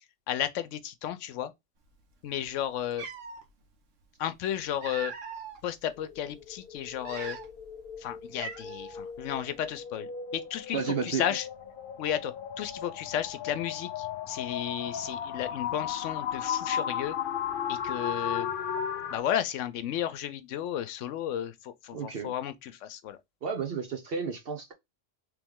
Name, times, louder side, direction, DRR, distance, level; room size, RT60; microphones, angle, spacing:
voice 1, 0.3-1.5 2.2-3.1 4.2-5.1 5.6-7.4 8.0-11.5 12.0-17.2 17.7-18.5 19.1-23.2, left 10 dB, 80° left, 0.9 m, -33 dB
Cat, 2.4-2.5 2.9-3.4 4.4-5.6 6.1-6.3 6.9-7.7 8.0-8.1 8.4-9.0, right 5 dB, 85° right, 1.2 m, -41 dB
sound 1, 6.0-19.2, left 8 dB, 55° left, 0.6 m, -36 dB
voice 2, 10.7-11.3 21.9-22.3 23.4-24.7, right 6 dB, 55° right, 0.8 m, -32 dB
3.4 x 3.0 x 3.5 m
omnidirectional pair, 1.3 m